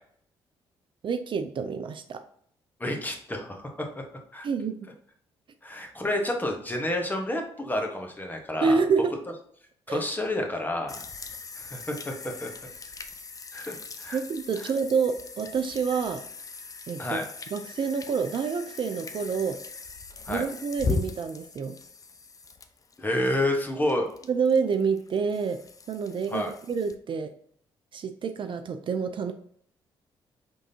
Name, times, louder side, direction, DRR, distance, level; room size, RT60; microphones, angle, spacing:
voice 1, 1.0-2.2 4.4-4.9 8.6-9.1 9.9-10.0 14.1-16.2 16.9-17.2 17.5-19.6 20.3-21.8 24.3-25.6 25.9-27.3 27.9-29.3, right 5 dB, 50° right, 7 dB, 0.5 m, -28 dB
voice 2, 2.8-4.0 4.3-4.5 5.6-8.8 9.9-11.0 11.6-12.5 13.5-14.2 14.6-14.7 17.0-17.2 20.2-20.4 23.0-24.1 26.3-26.5, left 1 dB, 15° left, 2 dB, 1.2 m, -29 dB
sound 1, 10.9-27.0, left 4 dB, 35° left, 0.6 m, -39 dB
5.2 x 3.5 x 2.8 m, 0.62 s
supercardioid pair, 60°, 11 cm